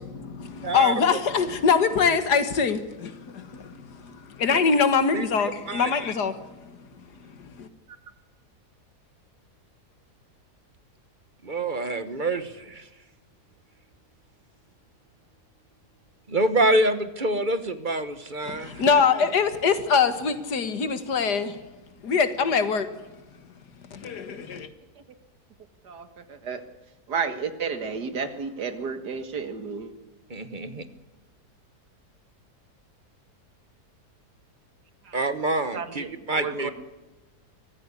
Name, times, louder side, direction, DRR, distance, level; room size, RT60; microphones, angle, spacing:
voice 1, 0.1-6.7 7.4-7.7 18.5-21.6 22.0-23.0 23.9-24.7, left 5 dB, 80° left, 2.1 m, -24 dB
voice 2, 0.6-1.2 5.1-5.2 5.7-5.9 11.4-12.8 16.3-18.8 30.3-30.8 35.1-36.7, right 2 dB, 30° right, 1.3 m, -26 dB
voice 3, 25.8-26.6 27.1-29.9 35.0-35.2 35.7-36.7, right 5 dB, 80° right, 2.3 m, -32 dB
23.5 x 15.0 x 8.3 m
omnidirectional pair, 1.7 m